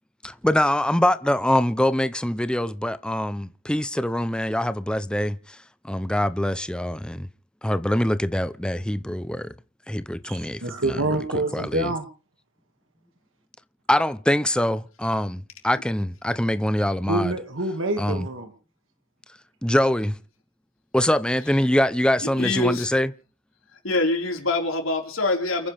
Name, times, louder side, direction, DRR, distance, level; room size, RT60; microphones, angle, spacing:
voice 1, 0.2-5.6 5.8-7.3 7.6-9.5 9.9-11.0 11.5-11.9 13.9-17.3 18.0-18.3 19.6-20.2 20.9-23.1, left 1 dB, 5° left, 0.7 m, -24 dB
voice 2, 10.2-12.1 17.1-18.5, right 2 dB, 65° right, 2.2 m, -27 dB
voice 3, 22.2-22.9 23.8-25.7, left 2 dB, 75° left, 4.8 m, -25 dB
29.5 x 10.0 x 3.5 m
head